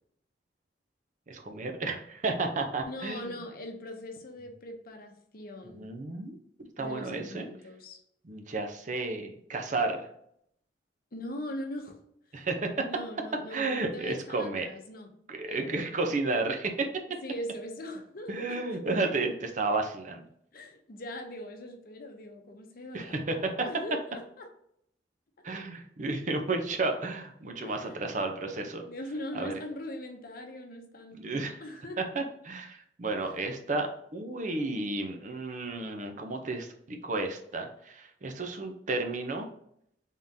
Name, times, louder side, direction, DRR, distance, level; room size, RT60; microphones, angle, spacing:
voice 1, 1.3-3.3 5.7-6.4 6.8-7.5 8.2-10.1 12.3-12.8 13.5-14.7 15.3-16.9 18.3-20.2 22.9-23.4 25.4-28.8 29.3-29.5 31.1-31.6 32.2-39.5, right 3 dB, 45° right, 5 dB, 0.6 m, -32 dB
voice 2, 2.9-5.9 6.8-8.0 11.1-12.0 12.9-15.1 15.5-15.9 17.2-18.8 20.5-24.5 27.6-28.0 28.8-32.0 33.2-33.3, left 1 dB, 55° left, 4 dB, 0.7 m, -41 dB
3.7 x 3.6 x 2.7 m, 0.71 s
head